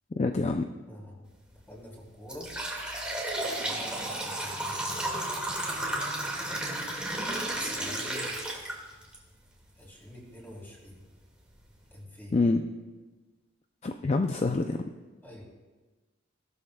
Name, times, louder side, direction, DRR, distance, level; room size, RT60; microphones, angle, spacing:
voice 1, 0.2-0.7 12.3-12.7 13.8-14.8, left 3 dB, 35° left, 5 dB, 0.4 m, -26 dB
voice 2, 0.8-1.3 1.7-2.5 3.6-5.1 7.5-8.4 9.8-11.0 11.9-12.4 15.2-15.4, left 1 dB, 10° left, -4 dB, 3.4 m, -46 dB
sound 1, 1.3-1.5 2.0-9.2 9.6-9.7 10.6-10.7 11.2-11.3 11.7-11.9, right 1 dB, 5° right, 2.0 m, -33 dB
17.5 x 12.5 x 2.3 m, 1.3 s
head